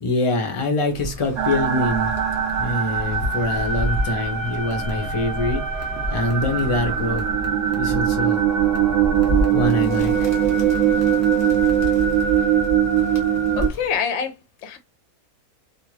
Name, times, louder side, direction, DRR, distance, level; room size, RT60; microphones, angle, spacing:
voice 1, 0.0-2.1 2.6-5.6 6.1-7.3 7.7-8.4 9.5-10.3, left 2 dB, 45° left, 0.4 m, -24 dB
Bird, 0.9-14.0, left 1 dB, 25° left, 1.1 m, -31 dB
sound 1, 1.4-13.7, right 9 dB, 65° right, 0.8 m, -22 dB
sound 2, 4.6-5.1 5.3-7.9 8.5-8.9 9.2-9.6 10.1-10.4 10.7-12.0, right 1 dB, 20° right, 0.4 m, -40 dB
voice 2, 13.6-14.8, left 7 dB, 60° left, 0.8 m, -26 dB
2.6 x 2.4 x 3.1 m
omnidirectional pair, 1.6 m